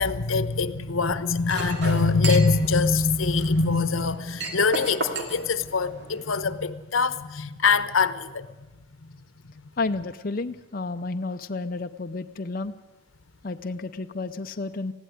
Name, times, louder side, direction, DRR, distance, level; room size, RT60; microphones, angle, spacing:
voice 1, 0.0-8.5, left 4 dB, 90° left, 1.0 m, -23 dB
Chink clink, 1.5-6.4, right 3 dB, 55° right, 2.9 m, -35 dB
voice 2, 9.8-12.7 13.4-14.9, left 3 dB, 45° left, 0.6 m, -31 dB
19.5 x 15.5 x 9.5 m
head